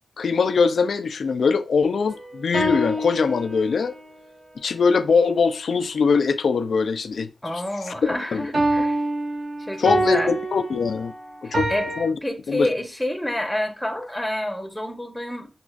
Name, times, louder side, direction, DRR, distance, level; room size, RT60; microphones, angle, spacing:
voice 1, 0.2-4.0 4.6-7.6 8.0-8.5 9.8-11.1 11.4-11.7 12.0-12.2 12.5-12.7, left 5 dB, 70° left, 0.4 m, -22 dB
sound 1, 2.1-4.0 8.5-12.0, right 1 dB, 70° right, 2.0 m, -26 dB
voice 2, 7.4-9.0 9.7-10.4 11.4-11.9 12.2-15.5, left 1 dB, 5° left, 0.8 m, -28 dB
6.1 x 2.4 x 2.4 m
wide cardioid pair, 90°, 0 cm